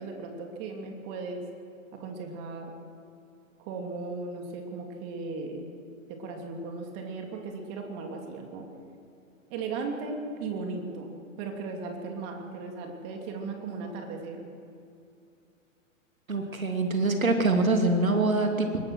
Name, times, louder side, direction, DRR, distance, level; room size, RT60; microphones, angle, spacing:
voice 1, 0.0-1.4 2.0-2.7 3.6-5.7 6.1-8.7 9.5-11.1 11.4-14.4, right 4 dB, 40° right, 2 dB, 2.9 m, -36 dB
voice 2, 16.3-18.8, right 2 dB, 85° right, 4 dB, 2.6 m, -24 dB
21.5 x 19.5 x 6.2 m, 2.5 s
figure-of-eight pair, 105°, 40 cm